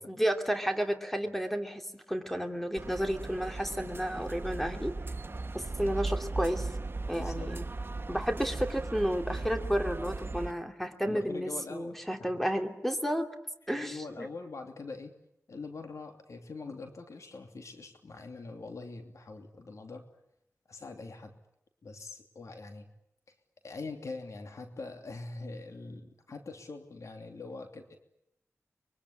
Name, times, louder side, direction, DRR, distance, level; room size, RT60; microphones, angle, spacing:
voice 1, 0.1-4.9 5.5-6.7 7.1-7.6 8.1-13.3 13.7-14.3, equal, 5° left, 5 dB, 2.9 m, -32 dB
sound 1, 2.8-10.5, right 3 dB, 45° right, 1.4 m, -37 dB
voice 2, 7.2-7.5 11.0-12.3 13.7-15.2 15.5-20.0 20.7-21.3 21.8-22.9 23.6-28.0, left 3 dB, 75° left, 5 dB, 2.9 m, -43 dB
25.0 x 23.5 x 10.0 m, 0.79 s
wide cardioid pair, 65°, 5 cm